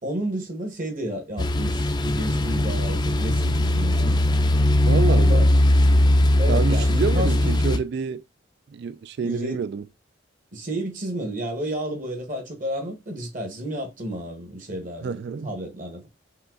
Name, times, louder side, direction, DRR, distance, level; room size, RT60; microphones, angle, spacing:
voice 1, 0.0-4.2 5.1-5.5 6.4-7.6 9.2-9.7 10.5-16.1, right 1 dB, 45° right, 1.4 m, -31 dB
sound 1, 1.4-7.8, left 1 dB, 20° left, 0.4 m, -19 dB
voice 2, 4.8-5.4 6.5-8.2 8.7-9.8 15.0-15.5, right 5 dB, 60° right, 0.3 m, -28 dB
5.6 x 2.4 x 3.8 m
head